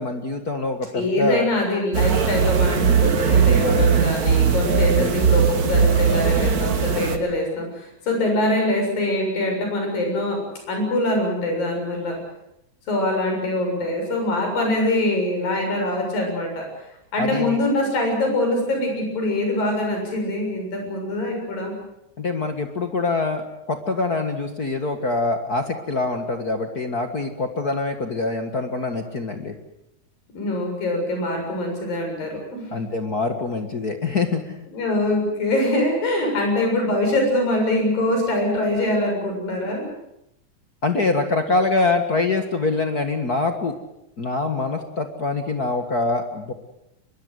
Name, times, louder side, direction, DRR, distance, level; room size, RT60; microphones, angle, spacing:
voice 1, 0.0-1.5 17.2-17.6 22.2-29.5 32.7-34.7 40.8-43.8 44.2-46.5, left 3 dB, 40° left, 6 dB, 1.4 m, -24 dB
voice 2, 0.9-10.4 10.7-12.2 12.9-16.7 17.1-21.7 30.4-32.7 34.7-39.9, left 1 dB, 85° left, 2 dB, 8.9 m, -23 dB
sound 1, 1.9-7.2, right 6 dB, 40° right, 1.3 m, -19 dB
23.5 x 22.0 x 7.9 m, 0.84 s
omnidirectional pair, 3.9 m